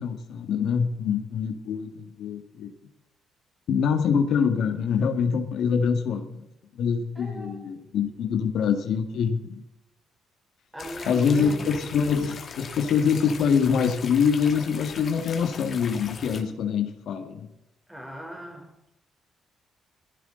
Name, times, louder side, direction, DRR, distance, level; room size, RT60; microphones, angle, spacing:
voice 1, 0.0-2.7 3.7-6.3 6.8-9.6 11.1-17.5, left 6 dB, 75° left, 1.9 m, -25 dB
voice 2, 7.2-7.7 10.7-11.7 17.9-18.9, equal, 5° right, 3.7 m, -39 dB
sound 1, 10.8-16.4, left 5 dB, 50° left, 2.4 m, -40 dB
18.5 x 15.5 x 3.9 m
cardioid pair, 90°, 0 cm